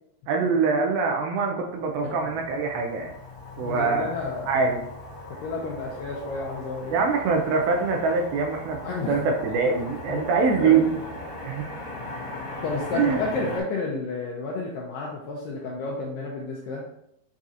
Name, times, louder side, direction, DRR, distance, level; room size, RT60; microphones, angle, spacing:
voice 1, 0.3-3.1 3.6-4.1 4.5-4.8 6.9-8.8 9.1-10.9 11.4-11.7 12.9-13.2, right 5 dB, 80° right, 2 dB, 2.2 m, -23 dB
Motor vehicle (road), 1.7-13.6, left 2 dB, 55° left, 2.1 m, -39 dB
voice 2, 3.6-4.5 5.4-7.0 8.8-9.3 9.6-9.7 10.1-10.2 10.6-11.0 12.6-16.8, left 3 dB, 85° left, -2 dB, 2.0 m, -31 dB
6.0 x 2.7 x 2.4 m, 0.77 s
omnidirectional pair, 4.5 m